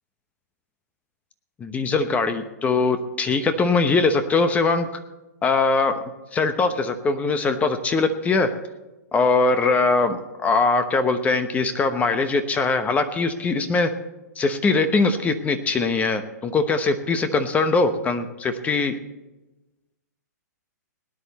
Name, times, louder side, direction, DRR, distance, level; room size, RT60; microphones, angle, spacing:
voice 1, 1.6-4.9 5.4-5.9 6.3-8.5 9.1-13.9 14.4-19.0, left 3 dB, 15° left, 10 dB, 1.0 m, -21 dB
18.0 x 10.5 x 4.2 m, 1.1 s
hypercardioid pair, 130°, 9 cm